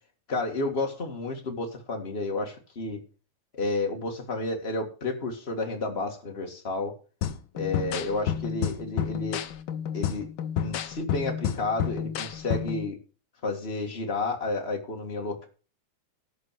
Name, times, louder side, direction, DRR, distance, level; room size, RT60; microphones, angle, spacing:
voice 1, 0.3-3.0 3.5-7.0 7.6-9.4 9.9-10.3 10.6-13.0 13.4-15.5, left 2 dB, 25° left, 2 dB, 1.9 m, -31 dB
sound 1, 7.2-12.8, left 9 dB, 80° left, 1.1 m, -30 dB
12.0 x 5.8 x 7.6 m, 0.37 s
omnidirectional pair, 3.3 m